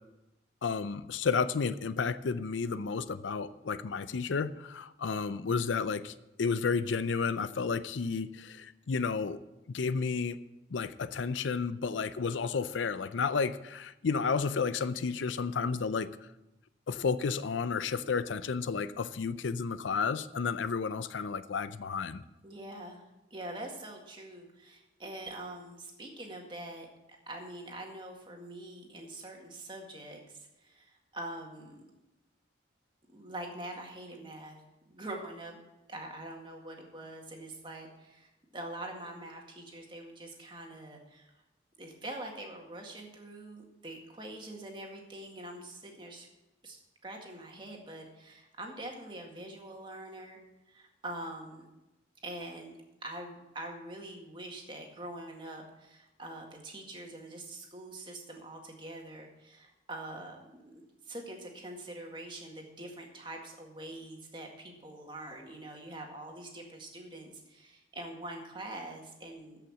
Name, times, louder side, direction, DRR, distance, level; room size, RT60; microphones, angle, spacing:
voice 1, 0.6-9.4 9.7-10.4 10.7-16.1 16.9-22.2, left 5 dB, 85° left, 14 dB, 0.5 m, -32 dB
voice 2, 22.4-23.0 23.3-26.9 27.3-31.8 33.1-34.6 34.9-35.6 35.9-41.3 41.8-46.3 46.6-50.4 50.7-51.7 52.2-60.4 60.6-69.6, right 1 dB, 25° right, 1 dB, 1.9 m, -44 dB
13.5 x 5.8 x 7.1 m, 0.96 s
head